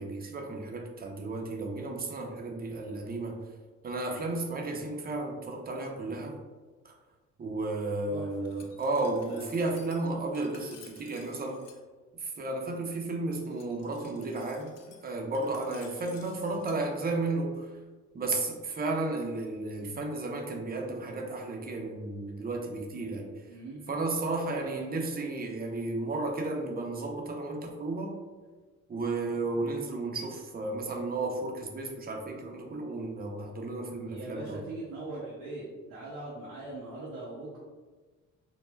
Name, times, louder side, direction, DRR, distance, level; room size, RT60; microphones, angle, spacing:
voice 1, 0.0-3.4 3.8-6.4 6.8-6.9 7.4-11.6 12.1-14.8 15.0-17.7 18.1-23.5 23.9-28.1 28.9-34.7, right 2 dB, 30° right, 1 dB, 0.5 m, -33 dB
voice 2, 8.1-8.5 8.9-9.4 16.5-16.8 23.5-23.9 24.6-24.8 34.1-37.6, right 2 dB, 90° right, -5 dB, 0.6 m, -41 dB
Glass, 8.4-11.8 13.4-16.8, left 6 dB, 55° left, 0.5 m, -55 dB
3.1 x 2.1 x 2.2 m, 1.3 s
cardioid pair, 90°, 30 cm